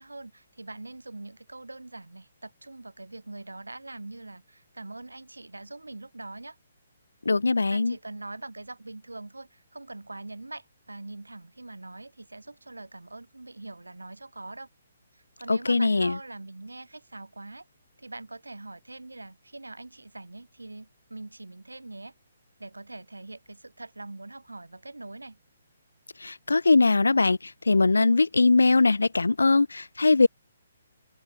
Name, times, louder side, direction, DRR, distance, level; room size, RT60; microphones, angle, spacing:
voice 1, 0.0-6.6 7.7-14.7 15.1-17.7 18.0-22.1 22.6-25.4, right 2 dB, 80° right, 3.9 m, -43 dB
voice 2, 7.2-7.9 15.5-16.2 26.2-30.3, left 3 dB, 75° left, 0.8 m, -21 dB
figure-of-eight pair, 135°, 0 cm